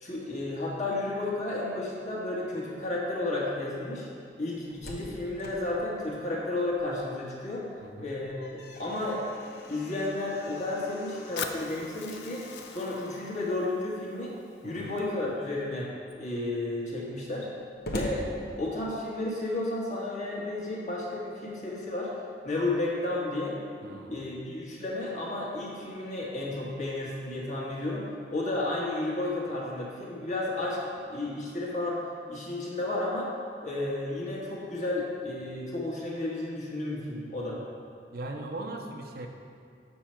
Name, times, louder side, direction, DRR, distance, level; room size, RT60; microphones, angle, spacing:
voice 1, 0.0-4.1 4.4-7.6 8.0-9.2 9.7-12.4 12.7-14.3 14.6-17.5 17.9-18.3 18.6-22.1 22.4-23.6 23.8-30.8 31.1-32.0 32.3-33.3 33.6-37.6, left 2 dB, 45° left, -4 dB, 1.4 m, -32 dB
Slam, 4.5-7.2 7.6-7.7 8.1-13.7 14.6-15.2 15.7-19.2, left 1 dB, 60° left, 0.9 m, -44 dB
voice 2, 7.8-8.2 14.6-15.1 23.8-24.3 38.1-39.3, right 2 dB, 55° right, 3 dB, 0.6 m, -39 dB
Fire, 11.4-15.4, left 7 dB, 75° left, 0.5 m, -42 dB
6.9 x 6.1 x 4.4 m, 2.3 s
head